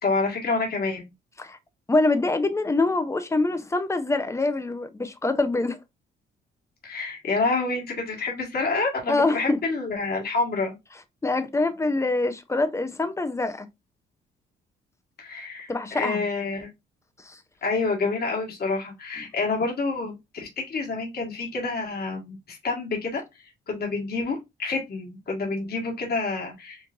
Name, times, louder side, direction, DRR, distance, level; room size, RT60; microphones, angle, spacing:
voice 1, 0.0-1.1 6.8-10.8 15.2-16.7 17.6-23.2 23.7-26.8, left 3 dB, 50° left, 1.7 m, -28 dB
voice 2, 1.9-5.8 9.1-9.6 11.2-13.7 15.7-16.2 17.3-17.4, left 2 dB, 15° left, 0.7 m, -25 dB
4.7 x 2.5 x 2.5 m
cardioid pair, 90°, 20 cm